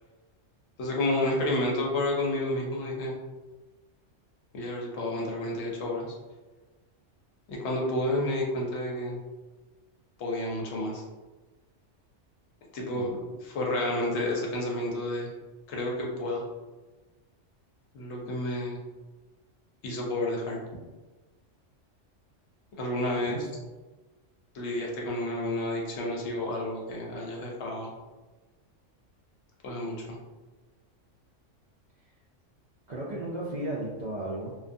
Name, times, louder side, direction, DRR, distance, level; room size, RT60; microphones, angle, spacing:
voice 1, 0.8-3.2 4.5-6.1 7.5-9.2 10.2-11.0 12.7-15.3 15.7-16.4 17.9-18.8 19.8-20.6 22.8-23.4 24.5-27.9 29.6-30.2, left 1 dB, 65° left, -2 dB, 0.8 m, -30 dB
voice 2, 23.2-23.5 32.9-34.5, right 1 dB, 65° right, -6 dB, 0.4 m, -35 dB
2.4 x 2.3 x 2.5 m, 1.2 s
omnidirectional pair, 1.3 m